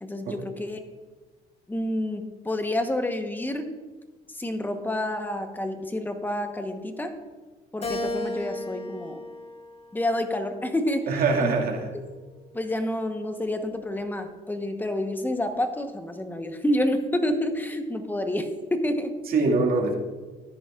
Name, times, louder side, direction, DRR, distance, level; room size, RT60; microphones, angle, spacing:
voice 1, 0.0-0.8 1.7-3.8 4.3-7.2 7.7-9.2 9.9-11.5 12.5-19.2, left 1 dB, 10° left, 6 dB, 1.1 m, -29 dB
Keyboard (musical), 7.8-10.3 10.9-12.1, left 2 dB, 40° left, 2.6 m, -35 dB
voice 2, 11.1-11.8 19.3-19.9, right 3 dB, 60° right, -1 dB, 2.2 m, -23 dB
13.5 x 10.0 x 2.5 m, 1.3 s
cardioid pair, 110°, 17 cm